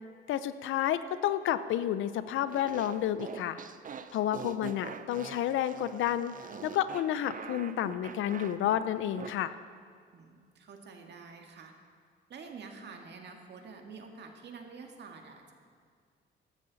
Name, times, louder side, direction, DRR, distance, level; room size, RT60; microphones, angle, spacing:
voice 1, 0.3-3.6 4.1-6.3 6.6-9.5, left 11 dB, 80° left, 13 dB, 0.6 m, -30 dB
sound 1, 2.5-9.3, right 7 dB, 45° right, 0.7 m, -44 dB
voice 2, 10.1-11.7 12.3-15.5, right 5 dB, 60° right, 3 dB, 1.9 m, -48 dB
14.5 x 12.5 x 4.1 m, 2.1 s
cardioid pair, 90°, 20 cm